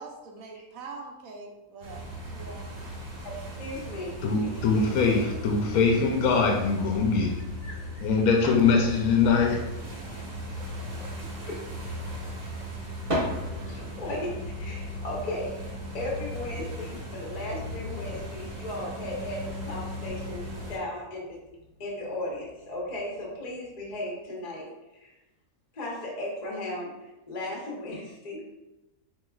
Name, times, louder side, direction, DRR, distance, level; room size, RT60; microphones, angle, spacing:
voice 1, 0.0-2.8 11.2-11.5, right 3 dB, 70° right, 2 dB, 0.9 m, -44 dB
sound 1, 1.8-20.8, left 1 dB, 90° right, 1.7 m, -37 dB
voice 2, 3.6-4.2 4.4-5.2 7.6-8.1 11.4-11.6 13.6-20.4 20.7-21.4 21.8-24.7 24.9-25.1 25.7-28.4, left 1 dB, 35° left, -3 dB, 0.7 m, -36 dB
voice 3, 4.2-7.4 8.0-9.7, left 4 dB, 70° left, 1 dB, 1.0 m, -23 dB
sound 2, 13.0-24.1, equal, 25° right, 0.9 m, -41 dB
4.6 x 3.1 x 2.3 m, 0.98 s
omnidirectional pair, 1.6 m